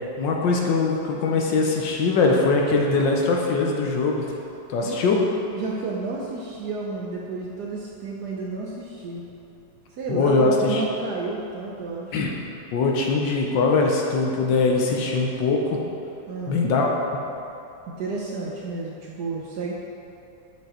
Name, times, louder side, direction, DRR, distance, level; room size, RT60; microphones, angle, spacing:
voice 1, 0.2-4.3 4.7-5.2 10.1-10.8 12.1-12.3 12.7-15.8 16.5-16.9, left 3 dB, 70° left, -1 dB, 1.3 m, -21 dB
voice 2, 4.8-5.2 5.5-9.2 9.9-12.2 16.3-16.6 18.0-19.7, right 3 dB, 70° right, -3 dB, 1.0 m, -31 dB
7.8 x 5.1 x 4.2 m, 2.8 s
omnidirectional pair, 2.3 m